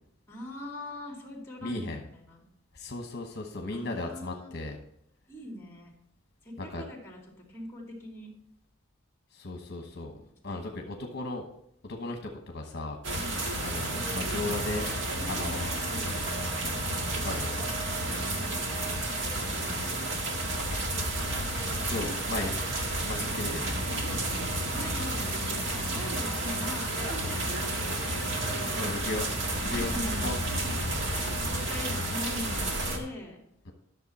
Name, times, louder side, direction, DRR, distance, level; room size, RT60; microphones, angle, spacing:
voice 1, 0.3-2.5 3.3-3.4 3.7-4.5 5.3-5.9 6.4-7.2 7.5-8.3 10.5-10.9 13.1-13.4 15.1-16.2 18.3-20.6 21.9-22.5 22.9-23.3 24.7-28.1 28.4-29.0 29.7-30.3 31.0-33.4, left 1 dB, 15° left, 0 dB, 2.5 m, -42 dB
voice 2, 1.6-2.0 2.7-4.8 6.6-6.8 9.3-10.2 10.4-11.5 11.8-13.0 13.6-14.9 15.3-15.7 16.7-17.6 19.7-19.8 21.8-22.5 23.0-23.7 28.8-29.3 29.6-29.9 30.2-30.4, left 2 dB, 55° left, 3 dB, 1.1 m, -36 dB
sound 1, 13.0-33.0, right 1 dB, 70° right, 1.7 m, -31 dB
11.5 x 6.7 x 4.2 m, 0.74 s
head